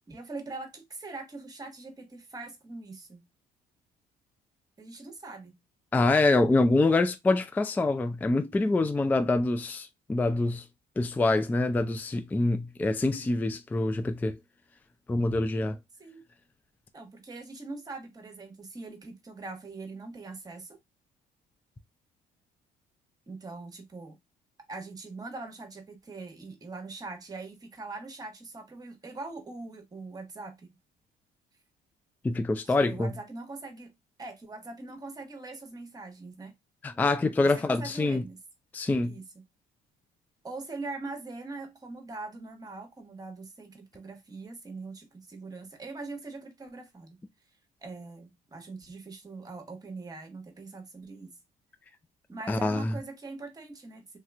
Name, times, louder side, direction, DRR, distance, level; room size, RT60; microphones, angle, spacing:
voice 1, 0.1-3.3 4.8-5.6 9.1-9.3 16.0-16.2 16.9-20.8 23.3-24.2 24.7-30.7 32.6-33.9 34.2-36.5 37.4-38.4 39.0-39.2 40.4-47.2 47.8-51.4 52.3-54.2, right 3 dB, 20° right, 1.0 m, -42 dB
voice 2, 5.9-10.6 11.0-14.4 15.1-15.8 32.2-33.1 36.8-38.2 38.7-39.1 52.5-52.9, left 2 dB, 10° left, 0.3 m, -25 dB
3.3 x 2.8 x 2.3 m
cardioid pair, 110°, 17 cm